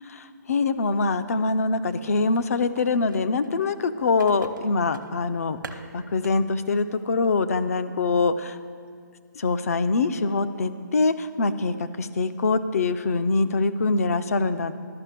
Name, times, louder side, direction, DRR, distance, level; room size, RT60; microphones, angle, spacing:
voice 1, 0.1-8.6 9.4-14.7, left 3 dB, 50° left, 12 dB, 0.5 m, -24 dB
sound 1, 1.9-3.5 4.2-6.4 6.6-6.8 7.2-7.3, right 4 dB, 85° right, 0.9 m, -44 dB
11.5 x 5.8 x 8.2 m, 2.1 s
hypercardioid pair, 170°, 10 cm